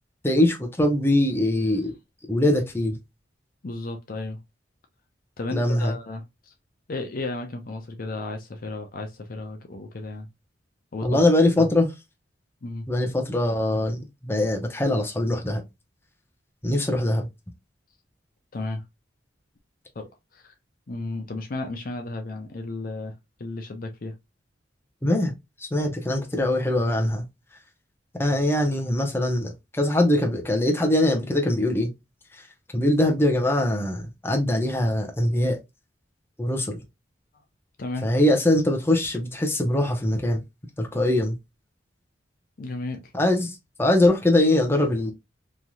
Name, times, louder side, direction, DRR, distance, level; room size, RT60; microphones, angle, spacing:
voice 1, 0.2-1.9 2.3-3.0 5.5-5.9 11.0-11.9 12.9-15.6 16.6-17.3 25.0-25.3 25.7-27.2 28.2-31.9 32.7-35.6 36.4-36.8 38.0-40.4 40.8-41.4 43.1-45.1, left 1 dB, 15° left, 0.7 m, -22 dB
voice 2, 3.6-4.4 5.4-6.5 6.9-10.3 10.9-11.2 11.6-11.7 12.6-12.9 18.5-18.8 19.9-20.5 20.9-23.1 23.4-24.1 32.8-33.0 37.8-38.1 42.6-43.1, left 2 dB, 50° left, 0.5 m, -34 dB
3.1 x 2.7 x 2.2 m
head